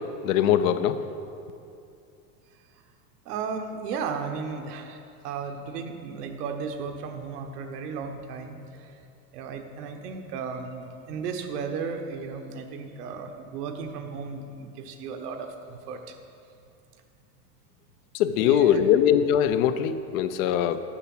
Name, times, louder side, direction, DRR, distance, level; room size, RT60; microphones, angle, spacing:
voice 1, 0.2-1.0 18.1-20.8, left 9 dB, 60° left, 11 dB, 0.6 m, -22 dB
voice 2, 3.2-9.0 9.3-16.2 18.4-19.0 20.5-20.6, right 5 dB, 85° right, 5 dB, 1.2 m, -35 dB
8.9 x 7.0 x 6.0 m, 2.5 s
supercardioid pair, 140°, 46 cm